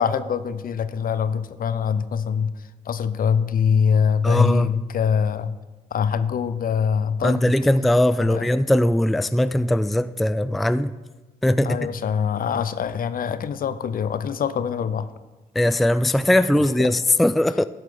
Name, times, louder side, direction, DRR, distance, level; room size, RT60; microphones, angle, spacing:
voice 1, 0.0-5.6 5.9-7.5 8.2-8.5 11.6-15.1 16.6-16.9, left 7 dB, 55° left, 0.6 m, -24 dB
voice 2, 4.2-4.7 7.2-10.9 11.4-11.9 15.6-17.6, left 1 dB, ahead, 0.3 m, -20 dB
13.0 x 7.4 x 3.7 m
hypercardioid pair, 45°, 18 cm